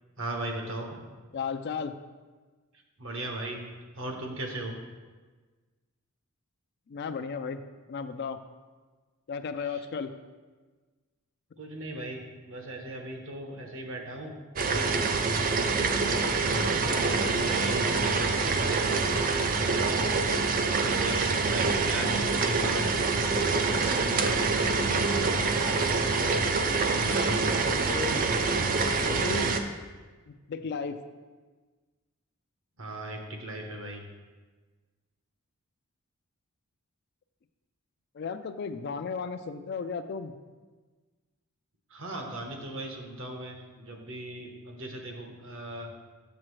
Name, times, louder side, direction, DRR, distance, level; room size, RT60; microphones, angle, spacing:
voice 1, 0.2-1.0 3.0-3.6 3.9-4.7 9.7-9.8 11.6-12.2 12.5-14.3 14.6-14.9 15.5-20.1 20.8-22.9 23.6-25.1 25.5-25.9 26.5-27.7 32.8-34.0 41.9-45.9, right 1 dB, 60° right, 2 dB, 1.1 m, -38 dB
voice 2, 1.3-1.9 6.9-7.6 7.9-8.4 9.3-10.1 27.8-28.4 28.9-29.5 30.3-31.0 38.1-40.3, left 5 dB, 50° left, 9 dB, 0.4 m, -34 dB
sound 1, 14.6-29.6, right 4 dB, 40° right, 0.4 m, -26 dB
7.4 x 6.6 x 3.2 m, 1.3 s
head